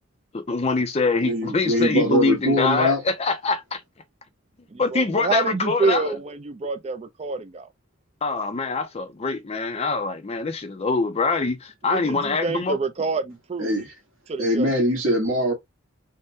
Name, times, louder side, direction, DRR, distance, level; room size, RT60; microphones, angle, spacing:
voice 1, 0.3-3.8 4.8-6.1 8.2-12.8, left 3 dB, 30° left, 0.4 m, -24 dB
voice 2, 1.2-3.0 13.6-13.9 14.4-15.5, equal, 65° right, 1.2 m, -22 dB
voice 3, 4.7-7.7 11.9-13.8 14.3-14.7, right 4 dB, 30° right, 0.4 m, -27 dB
3.4 x 2.1 x 2.5 m
head